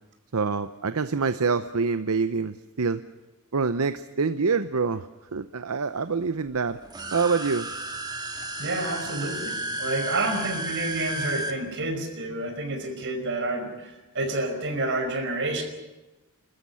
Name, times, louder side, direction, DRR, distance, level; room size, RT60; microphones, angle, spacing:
voice 1, 0.3-3.0 3.5-6.8 7.1-7.7, right 4 dB, 75° right, 11 dB, 0.8 m, -26 dB
sound 1, 6.8-11.5, right 1 dB, 20° right, 1.9 m, -33 dB
voice 2, 8.6-15.6, right 2 dB, 55° right, 4 dB, 5.3 m, -29 dB
28.5 x 14.0 x 9.7 m, 1.1 s
head